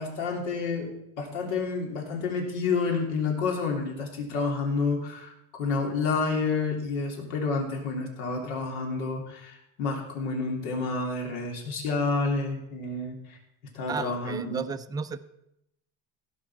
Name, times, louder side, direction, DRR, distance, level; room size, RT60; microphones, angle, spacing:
voice 1, 0.0-5.3 5.6-13.4 13.7-14.6, left 4 dB, 85° left, 1 dB, 3.2 m, -29 dB
voice 2, 13.9-15.2, right 5 dB, 10° right, 10 dB, 0.4 m, -33 dB
16.5 x 5.6 x 5.9 m, 0.80 s
cardioid pair, 130°, 35 cm